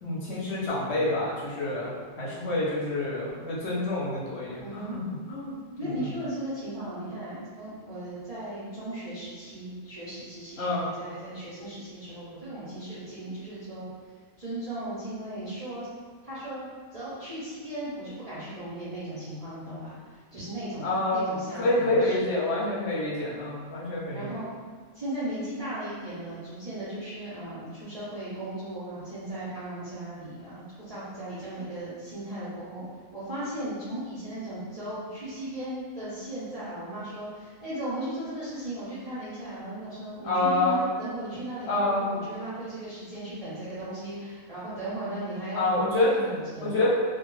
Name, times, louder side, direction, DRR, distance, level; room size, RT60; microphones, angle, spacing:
voice 1, 0.0-5.0 5.3-5.9 10.6-10.8 20.8-24.3 40.2-40.8 41.7-42.1 45.5-46.1 46.6-46.9, left 2 dB, 60° left, -7 dB, 0.8 m, -27 dB
voice 2, 4.6-5.0 5.8-13.9 14.4-15.9 16.2-16.7 16.9-20.8 21.1-22.3 24.1-24.5 24.9-32.8 33.1-46.7, right 1 dB, 45° right, -12 dB, 0.5 m, -36 dB
2.1 x 2.1 x 3.0 m, 1.5 s
omnidirectional pair, 1.4 m